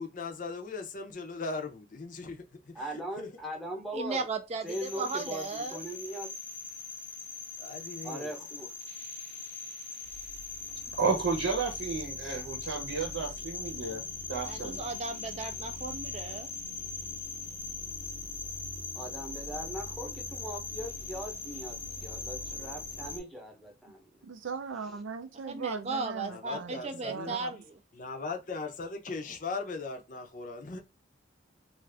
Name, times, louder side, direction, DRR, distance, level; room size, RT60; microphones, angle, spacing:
voice 1, 0.0-3.3 7.6-8.3 19.6-19.8 22.4-23.1 26.2-27.3 27.9-30.8, left 4 dB, 45° left, 0.5 m, -39 dB
voice 2, 2.7-4.2 4.6-6.3 8.0-8.7 18.9-24.1, right 1 dB, ahead, 0.7 m, -40 dB
voice 3, 3.9-5.8 14.4-16.5 25.5-27.6, right 3 dB, 35° right, 0.3 m, -36 dB
sound 1, 4.7-23.2, left 3 dB, 90° left, 0.7 m, -40 dB
voice 4, 11.0-14.0 14.3-14.8, right 4 dB, 75° right, 0.9 m, -32 dB
voice 5, 24.2-27.6, right 5 dB, 90° right, 0.5 m, -39 dB
2.5 x 2.4 x 3.3 m
head